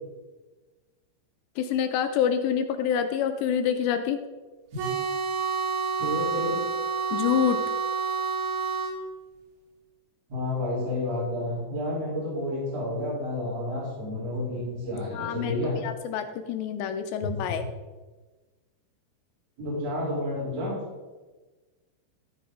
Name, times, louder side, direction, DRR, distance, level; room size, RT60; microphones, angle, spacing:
voice 1, 1.6-4.2 7.1-7.6 15.1-15.6 15.8-17.6, left 8 dB, 85° left, 8 dB, 2.7 m, -26 dB
sound 1, 4.8-9.0, right 5 dB, 80° right, 3.3 m, -28 dB
voice 2, 6.0-6.6 10.3-15.8 17.2-17.6 19.6-20.7, left 1 dB, 40° right, -8 dB, 3.9 m, -30 dB
14.0 x 5.0 x 3.6 m, 1.3 s
omnidirectional pair, 5.1 m